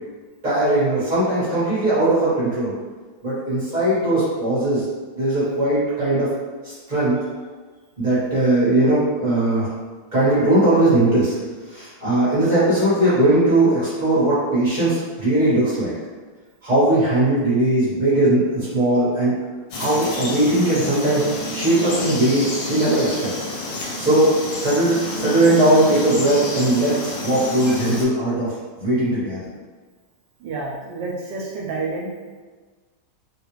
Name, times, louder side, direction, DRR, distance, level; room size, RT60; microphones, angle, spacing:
voice 1, 0.4-2.8 3.2-4.8 5.2-6.3 6.6-7.2 8.0-9.7 10.1-11.4 11.7-15.9 16.6-19.3 19.7-21.2 21.5-23.3 24.0-24.3 24.6-29.4, right 1 dB, 30° right, -11 dB, 1.1 m, -19 dB
Frog, 19.7-28.1, left 1 dB, 60° left, 1.0 m, -29 dB
voice 2, 30.4-32.1, right 3 dB, 80° right, -3 dB, 1.2 m, -29 dB
3.4 x 2.4 x 3.0 m, 1.4 s
omnidirectional pair, 2.0 m